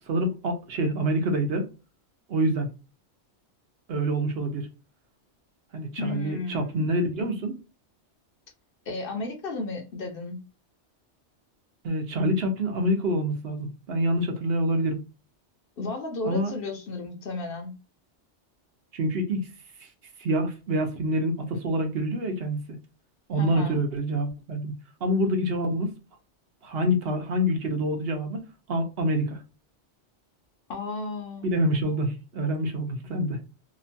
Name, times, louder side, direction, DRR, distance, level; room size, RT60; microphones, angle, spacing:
voice 1, 0.1-1.7 2.3-2.7 3.9-4.7 5.7-7.6 11.8-15.0 16.2-16.5 18.9-19.5 19.8-19.9 20.2-22.6 23.3-24.7 25.0-25.9 26.6-29.4 31.4-33.4, right 1 dB, 65° right, 0.9 m, -26 dB
voice 2, 6.0-6.9 8.9-10.5 15.8-17.8 23.4-23.8 30.7-31.5, left 3 dB, 60° left, 0.8 m, -33 dB
2.9 x 2.2 x 2.6 m
omnidirectional pair, 1.2 m